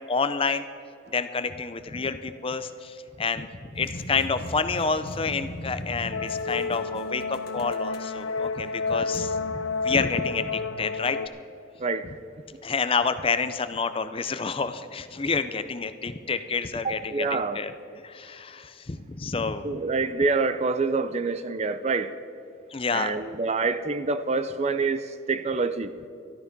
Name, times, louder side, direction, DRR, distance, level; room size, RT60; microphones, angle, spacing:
voice 1, 0.1-0.7 1.1-11.2 12.6-17.7 18.0-19.6 22.7-23.1, left 4 dB, 25° left, 0.5 m, -29 dB
sound 1, 3.7-10.6, left 1 dB, 50° left, 1.0 m, -40 dB
sound 2, 6.1-11.3, left 4 dB, 80° left, 0.6 m, -30 dB
voice 2, 11.8-12.2 16.8-17.7 19.6-22.2 22.9-25.9, right 4 dB, 35° right, 0.5 m, -26 dB
13.0 x 12.5 x 5.3 m
head